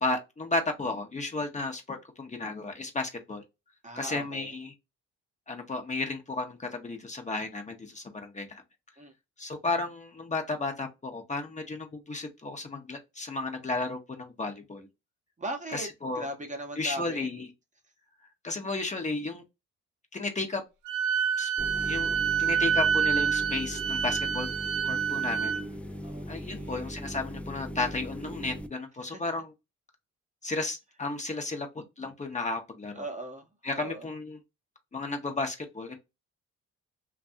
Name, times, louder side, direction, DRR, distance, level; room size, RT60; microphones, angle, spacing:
voice 1, 0.0-3.4 4.0-4.7 5.5-8.6 9.4-14.9 15.7-16.2 16.8-17.5 18.4-19.4 20.1-20.6 21.4-21.5 21.8-24.5 24.8-25.6 26.3-29.5 30.4-33.0 33.6-34.4 34.9-36.0, left 3 dB, 25° left, 0.7 m, -33 dB
voice 2, 3.8-4.5 9.0-9.1 15.4-15.9 16.1-17.3 26.0-26.9 29.0-29.2 33.0-33.5 33.7-34.1, right 1 dB, 25° right, 0.8 m, -39 dB
Wind instrument woodwind instrument, 20.9-25.6, right 7 dB, 80° right, 0.6 m, -27 dB
sound 1, 21.6-28.7, right 1 dB, 5° left, 0.4 m, -39 dB
2.6 x 2.3 x 2.5 m
cardioid pair, 90°, 30 cm